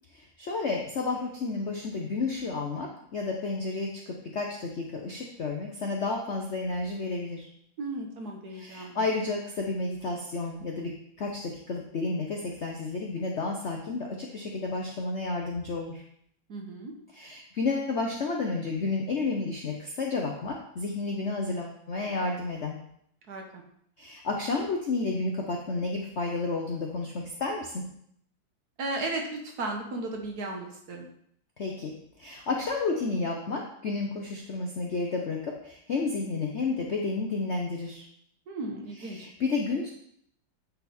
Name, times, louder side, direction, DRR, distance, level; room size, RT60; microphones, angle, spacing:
voice 1, 0.4-7.5 8.5-16.0 17.1-22.8 24.0-27.8 31.6-31.9 32.2-38.0 39.0-39.9, left 3 dB, 60° left, 0 dB, 0.7 m, -31 dB
voice 2, 7.8-9.1 16.5-16.9 23.3-23.6 28.8-31.1 38.5-39.3, right 2 dB, 55° right, 2 dB, 1.4 m, -35 dB
9.4 x 4.0 x 4.2 m, 0.70 s
omnidirectional pair, 2.1 m